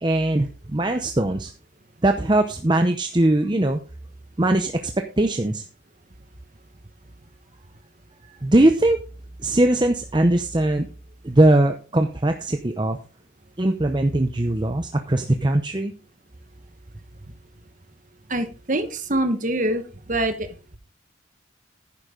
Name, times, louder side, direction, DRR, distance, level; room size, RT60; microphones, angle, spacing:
voice 1, 0.0-1.5 2.0-3.8 4.4-5.6 8.4-9.0 9.4-10.9 11.2-13.0 13.6-15.9, right 1 dB, 25° right, 6 dB, 0.7 m, -20 dB
voice 2, 18.3-19.8 20.1-20.5, right 1 dB, 40° right, 9 dB, 1.4 m, -24 dB
11.0 x 9.7 x 3.8 m, 0.34 s
head